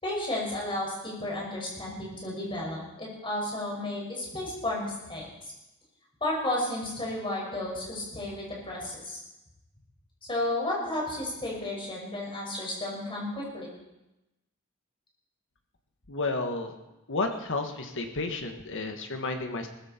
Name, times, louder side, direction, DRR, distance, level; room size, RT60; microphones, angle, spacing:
voice 1, 0.0-5.3 6.2-9.2 10.3-13.7, left 1 dB, 25° left, -3 dB, 5.9 m, -32 dB
voice 2, 16.1-16.7 17.1-19.7, left 3 dB, 60° left, 5 dB, 1.7 m, -31 dB
19.5 x 14.5 x 4.5 m, 0.97 s
head